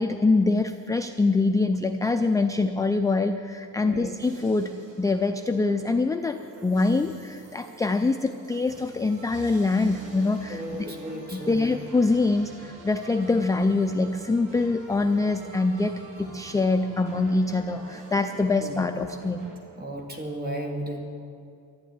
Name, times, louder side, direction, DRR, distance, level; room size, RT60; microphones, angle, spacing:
voice 1, 0.0-10.9 11.3-19.4, left 3 dB, 10° left, 6 dB, 0.3 m, -24 dB
voice 2, 3.8-4.1 10.5-11.7 18.6-18.8 19.8-21.0, right 1 dB, 30° right, 1 dB, 2.2 m, -34 dB
sound 1, 4.2-19.6, right 3 dB, 70° right, 2.7 m, -46 dB
12.0 x 11.5 x 9.5 m, 2.5 s
wide cardioid pair, 180°, 32 cm